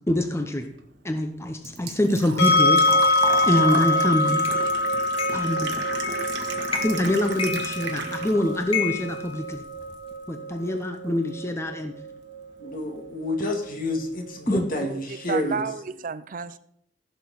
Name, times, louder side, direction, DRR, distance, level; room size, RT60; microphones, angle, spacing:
voice 1, 0.1-0.7 1.0-2.8 3.5-4.5 5.3-5.7 6.8-9.6 10.3-11.9 14.5-14.7, left 1 dB, 15° left, 0.8 m, -25 dB
Engine / Trickle dribble / Fill (with liquid), 0.7-8.6 9.0-9.9 10.2-10.3 12.2-12.3 12.5-12.9 13.2-13.3 13.6-13.7, right 4 dB, 75° right, 1.4 m, -34 dB
sound 1, 2.4-15.4, left 2 dB, 85° left, 5.0 m, -26 dB
sound 2, 4.4-4.6 5.2-5.5 6.0-6.3 6.7-7.1 7.4-8.2 8.7-10.0, left 7 dB, 35° left, 1.2 m, -31 dB
voice 2, 12.6-15.6, left 1 dB, 55° left, 1.9 m, -29 dB
voice 3, 14.8-16.6, right 5 dB, 50° right, 0.5 m, -32 dB
15.5 x 6.6 x 4.1 m
head